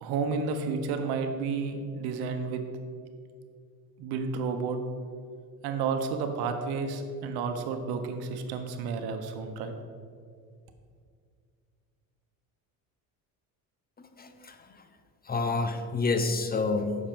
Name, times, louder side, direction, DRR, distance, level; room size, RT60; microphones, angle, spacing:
voice 1, 0.0-2.6 4.0-4.8 5.6-9.7, right 5 dB, 70° right, 6 dB, 1.1 m, -31 dB
voice 2, 14.2-14.6 15.3-17.0, left 3 dB, 25° left, 7 dB, 0.7 m, -28 dB
9.1 x 6.5 x 5.1 m, 2.2 s
supercardioid pair, 95°, 39 cm